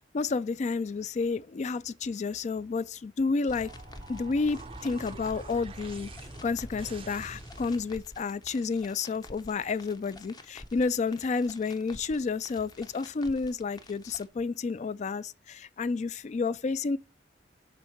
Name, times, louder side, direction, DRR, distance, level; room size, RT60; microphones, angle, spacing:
voice 1, 0.1-3.7 4.1-6.1 6.4-17.0, left 4 dB, 40° left, 0.4 m, -30 dB
sound 1, 3.5-14.2, left 1 dB, 25° left, 0.7 m, -48 dB
sound 2, 3.5-8.1, right 5 dB, 30° right, 0.4 m, -48 dB
6.0 x 3.6 x 4.5 m
head